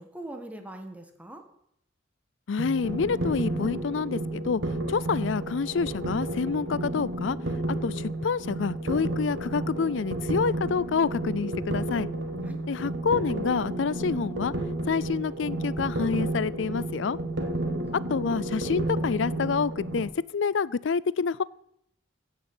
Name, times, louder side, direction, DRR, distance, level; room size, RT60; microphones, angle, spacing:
voice 1, 0.0-1.4 12.4-12.6 17.5-18.0, right 1 dB, 10° right, 5 dB, 1.8 m, -42 dB
voice 2, 2.5-4.6 4.9-7.4 7.7-12.1 12.7-14.5 14.9-17.2 18.1-21.4, left 5 dB, 75° left, 21 dB, 0.5 m, -28 dB
sound 1, 2.6-20.0, right 1 dB, 70° right, 2.0 m, -31 dB
15.5 x 6.7 x 7.9 m, 0.74 s
head